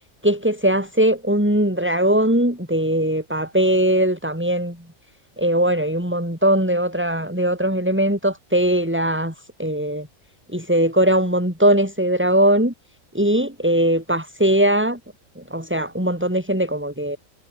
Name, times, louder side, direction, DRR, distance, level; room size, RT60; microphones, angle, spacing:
voice 1, 0.2-4.8 5.4-9.3 9.6-10.1 10.5-12.7 13.1-15.0 15.4-17.2, right 1 dB, 10° right, 5.6 m, -20 dB
omnidirectional pair, 1.4 m